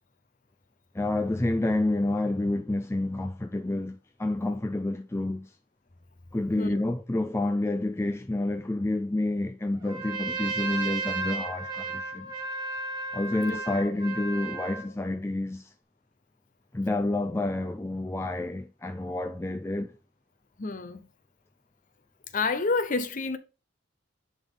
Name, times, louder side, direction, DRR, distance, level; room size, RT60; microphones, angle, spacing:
voice 1, 0.9-5.5 6.3-12.3 13.1-15.7 16.7-19.9, left 2 dB, 15° left, 0.4 m, -29 dB
Trumpet, 9.8-14.9, right 4 dB, 20° right, 1.4 m, -34 dB
voice 2, 20.6-21.1 22.3-23.4, left 4 dB, 40° left, 0.7 m, -29 dB
10.5 x 3.7 x 3.8 m
head